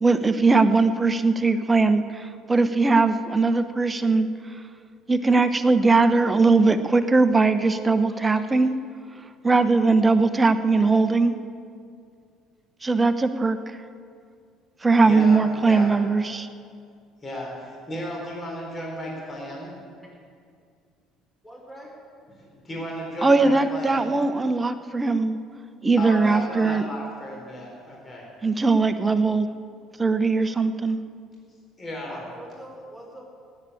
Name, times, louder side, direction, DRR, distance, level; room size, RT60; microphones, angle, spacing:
voice 1, 0.0-4.3 5.1-8.8 9.4-11.4 12.8-13.6 14.8-16.5 23.2-25.4 25.8-26.9 28.4-29.5 30.0-31.0, right 3 dB, 20° right, 11 dB, 1.0 m, -20 dB
voice 2, 15.0-15.9 17.2-19.7 22.3-24.1 26.0-28.2 31.8-32.2, equal, 30° left, -2 dB, 4.6 m, -34 dB
voice 3, 21.4-21.9 32.1-33.2, equal, 10° left, -1 dB, 5.1 m, -43 dB
18.5 x 8.6 x 8.6 m, 2.3 s
figure-of-eight pair, 55°, 0 cm